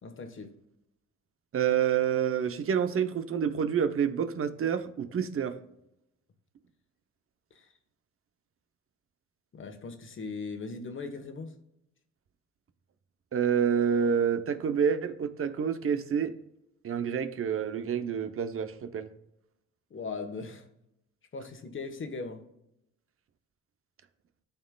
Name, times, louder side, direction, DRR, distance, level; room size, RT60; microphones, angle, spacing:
voice 1, 0.0-0.5 7.5-7.7 9.5-11.5 19.9-20.6 21.3-22.4, left 4 dB, 40° left, 6 dB, 1.3 m, -39 dB
voice 2, 1.5-5.6 13.3-16.3 16.8-19.1, right 7 dB, 45° right, 10 dB, 0.8 m, -28 dB
13.0 x 4.4 x 2.3 m, 0.81 s
cardioid pair, 90°, 30 cm